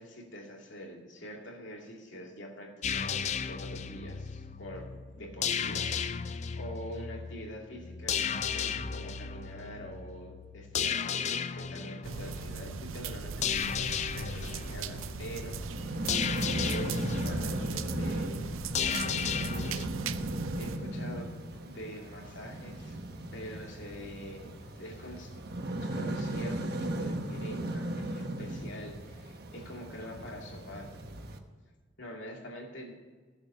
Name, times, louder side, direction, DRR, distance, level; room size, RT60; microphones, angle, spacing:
voice 1, 0.0-4.9 5.1-19.8 20.2-23.0 23.3-25.4 25.8-30.9 32.0-32.9, equal, 65° left, 0 dB, 2.5 m, -45 dB
sound 1, 2.8-19.9, left 7 dB, 35° left, 0.4 m, -35 dB
sound 2, 12.0-20.8, right 6 dB, 85° right, 0.5 m, -40 dB
sound 3, 15.0-31.4, right 1 dB, 50° right, 1.0 m, -37 dB
16.0 x 7.0 x 5.5 m, 1.4 s
head